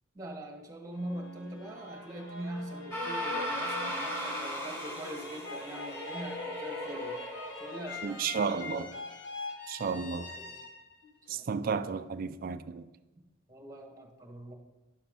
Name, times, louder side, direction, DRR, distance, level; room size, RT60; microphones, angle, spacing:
voice 1, 0.1-7.2 7.6-8.9 9.9-10.6 11.3-11.8 13.5-14.5, right 1 dB, 15° right, 1.4 m, -43 dB
sound 1, 0.9-11.9, left 4 dB, 55° left, 1.0 m, -43 dB
sound 2, 2.9-8.0, equal, 15° left, 2.1 m, -37 dB
voice 2, 8.0-8.9 9.7-10.3 11.3-12.9, right 5 dB, 45° right, 0.4 m, -33 dB
10.5 x 7.1 x 3.7 m
head